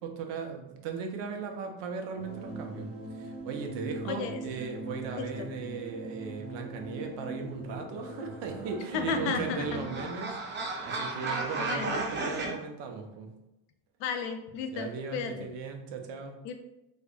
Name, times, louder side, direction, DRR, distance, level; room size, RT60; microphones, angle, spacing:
voice 1, 0.0-13.4 14.7-16.4, right 5 dB, 70° right, 4 dB, 0.6 m, -37 dB
sound 1, 2.1-10.0, right 1 dB, 45° right, 1.0 m, -41 dB
voice 2, 4.0-4.4 5.2-5.5 8.9-9.6 11.2-11.4 11.7-12.0 14.0-15.5 16.4-16.5, left 6 dB, 70° left, 7 dB, 0.5 m, -34 dB
sound 2, 8.6-12.5, right 3 dB, 25° right, 0.5 m, -35 dB
3.3 x 2.1 x 2.4 m, 0.90 s
cardioid pair, 115°, 45 cm